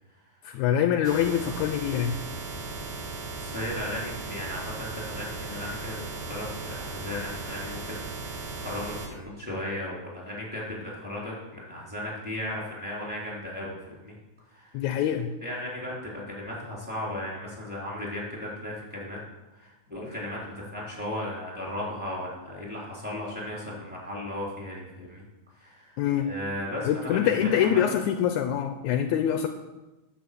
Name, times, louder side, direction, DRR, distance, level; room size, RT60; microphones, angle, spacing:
voice 1, 0.4-2.2 14.7-15.3 26.0-26.3 26.9-29.5, left 9 dB, 80° left, 7 dB, 1.9 m, -25 dB
sound 1, 1.0-9.1, right 3 dB, 80° right, 3.0 m, -37 dB
voice 2, 3.4-5.9 6.3-14.1 14.5-14.8 15.4-19.2 19.5-25.2 25.5-26.0 26.3-27.8, left 1 dB, 5° right, -5 dB, 3.7 m, -36 dB
10.0 x 8.2 x 7.0 m, 1.1 s
omnidirectional pair, 3.6 m